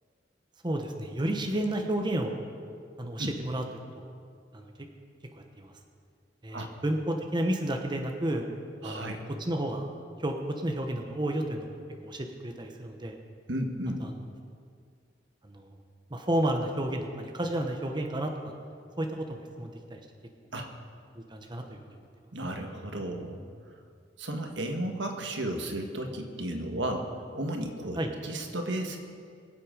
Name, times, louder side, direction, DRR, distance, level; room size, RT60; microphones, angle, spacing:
voice 1, 0.6-2.4 3.0-3.6 3.9-4.1 4.5-4.7 5.4-5.7 6.4-8.4 8.8-9.9 10.2-11.7 12.0-13.2 14.0-14.1 15.4-15.7 16.1-18.5 19.0-20.0 21.1-22.0 28.0-28.1, right 1 dB, 25° right, 3 dB, 1.1 m, -31 dB
voice 2, 8.8-9.3 13.5-14.0 20.5-20.7 22.3-23.4 24.2-29.0, right 1 dB, 80° right, 4 dB, 1.5 m, -34 dB
23.0 x 7.7 x 5.1 m, 2.2 s
head